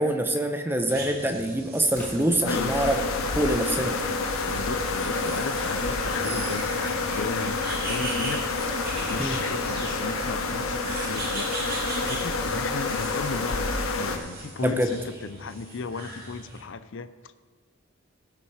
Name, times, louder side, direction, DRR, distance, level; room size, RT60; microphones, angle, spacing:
voice 1, 0.0-3.0 3.3-3.9 9.2-9.3 14.6-14.9, right 1 dB, 10° right, 6 dB, 0.8 m, -25 dB
sound 1, 0.9-16.6, right 2 dB, 45° right, 2.3 m, -39 dB
Crackle / Fireworks, 1.9-3.1 3.9-4.2 5.1-7.1, left 1 dB, 10° left, 3.1 m, -45 dB
voice 2, 2.4-2.8 4.5-11.5 11.8-17.3, left 4 dB, 60° left, 13 dB, 0.5 m, -36 dB
sound 2, 2.5-14.2, left 3 dB, 75° left, 1.1 m, -28 dB
17.5 x 6.0 x 4.9 m, 1.4 s
head